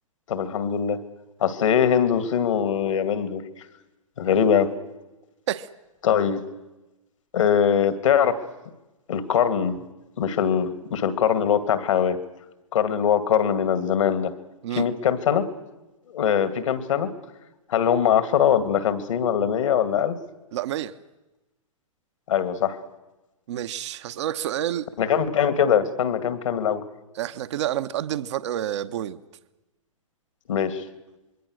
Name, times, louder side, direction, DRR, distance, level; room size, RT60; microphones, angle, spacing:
voice 1, 0.3-1.0 1.4-3.4 4.2-4.7 6.0-6.4 7.3-8.4 9.1-9.8 10.2-12.2 12.7-14.3 14.8-15.5 16.1-17.1 17.7-20.2 22.3-22.8 25.0-26.8 30.5-30.8, left 8 dB, 65° left, 11 dB, 2.3 m, -22 dB
voice 2, 20.5-20.9 23.5-24.9 27.1-29.2, right 11 dB, 55° right, 11 dB, 1.1 m, -28 dB
26.5 x 22.5 x 6.5 m, 1.0 s
figure-of-eight pair, 115°, 18 cm